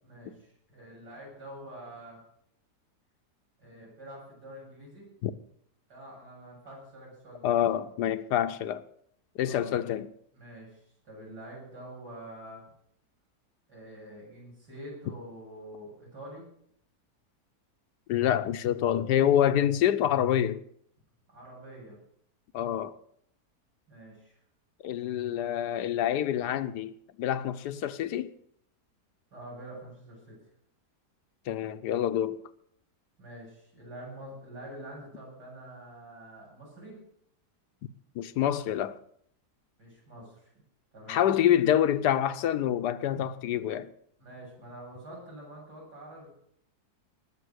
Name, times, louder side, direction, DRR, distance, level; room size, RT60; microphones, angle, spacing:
voice 1, 0.0-2.2 3.6-5.1 5.9-7.8 9.4-9.7 10.3-12.6 13.7-16.4 21.3-22.0 23.9-24.3 29.3-30.4 33.2-37.0 39.8-40.6 40.9-41.4 44.2-46.3, right 1 dB, 80° right, 8.3 m, -46 dB
voice 2, 7.4-8.8 9.4-10.1 18.1-20.6 22.5-22.9 24.8-26.9 27.2-28.3 31.5-32.4 38.2-39.0 41.1-43.9, left 10 dB, 80° left, 1.3 m, -26 dB
19.5 x 7.5 x 6.3 m
omnidirectional pair, 1.7 m